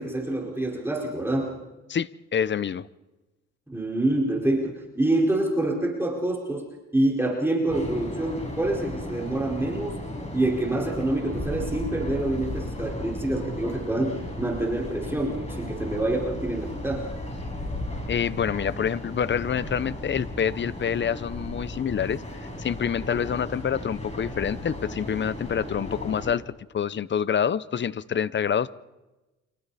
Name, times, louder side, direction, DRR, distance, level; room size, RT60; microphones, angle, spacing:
voice 1, 0.0-1.5 3.7-6.7 6.9-10.0 10.3-17.0, right 1 dB, 10° right, -3 dB, 4.6 m, -26 dB
voice 2, 1.9-2.9 18.1-22.2 22.6-28.7, left 8 dB, 40° left, 18 dB, 0.7 m, -27 dB
sound 1, 7.7-26.3, left 1 dB, 20° left, 6.7 m, -35 dB
30.0 x 26.0 x 4.2 m, 1.1 s
cardioid pair, 90°, 30 cm